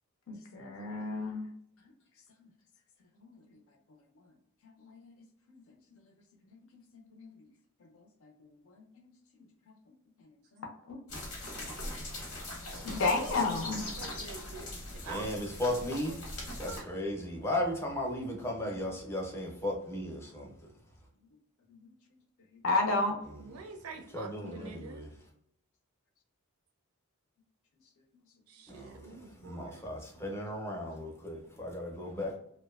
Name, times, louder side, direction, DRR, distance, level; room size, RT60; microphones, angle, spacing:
voice 1, 0.3-1.5 3.2-3.4 4.8-5.1 5.5-5.8 6.4-6.6 7.1-7.3 8.2-9.1 10.6-11.0 12.8-13.9 21.7-21.9 22.6-23.2 29.4-29.5, left 3 dB, 65° left, 2 dB, 0.5 m, -33 dB
sound 1, 11.1-16.8, left 1 dB, 90° left, 1.0 m, -41 dB
voice 2, 13.6-15.3 15.7-16.2 16.6-16.9 23.4-25.1 28.5-29.9, right 4 dB, 80° right, 4 dB, 0.4 m, -47 dB
voice 3, 15.0-16.2 16.6-20.7 23.3-23.4 24.1-25.1 28.7-32.4, left 1 dB, 10° left, -1 dB, 0.5 m, -36 dB
2.5 x 2.1 x 2.3 m, 0.71 s
head